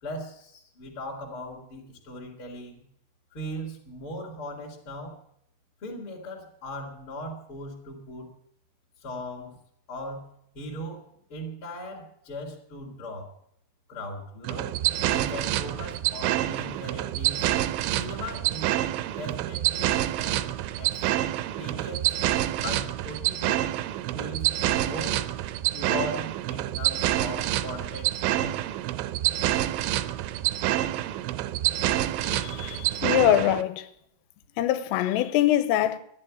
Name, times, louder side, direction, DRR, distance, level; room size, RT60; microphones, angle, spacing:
voice 1, 0.0-2.8 3.3-5.2 5.8-8.3 9.0-9.6 9.9-11.0 11.3-13.3 13.9-14.8 15.1-17.5 17.9-18.8 19.2-21.1 21.5-22.1 22.6-23.7 24.1-25.3 25.7-28.6, left 1 dB, 40° left, 2.0 m, -39 dB
sound 1, 14.5-33.6, right 13 dB, 80° right, 2.6 m, -27 dB
voice 2, 32.2-33.9 34.6-36.0, left 12 dB, 90° left, 3.5 m, -24 dB
11.5 x 10.5 x 8.5 m
omnidirectional pair, 5.8 m